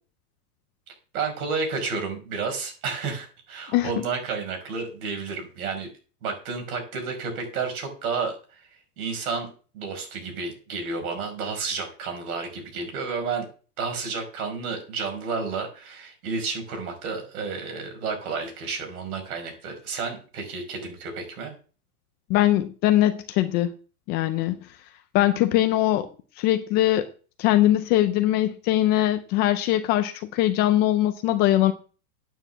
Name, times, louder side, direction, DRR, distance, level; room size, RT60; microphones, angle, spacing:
voice 1, 1.1-5.9 6.2-8.6 9.0-9.5 9.7-13.5 13.8-21.5, right 4 dB, 70° right, 4 dB, 5.4 m, -31 dB
voice 2, 22.3-23.7 24.1-24.6 25.1-26.1 26.4-27.1 27.4-31.7, left 14 dB, 25° left, 9 dB, 0.4 m, -21 dB
9.1 x 6.7 x 7.2 m, 0.38 s
supercardioid pair, 145°, 46 cm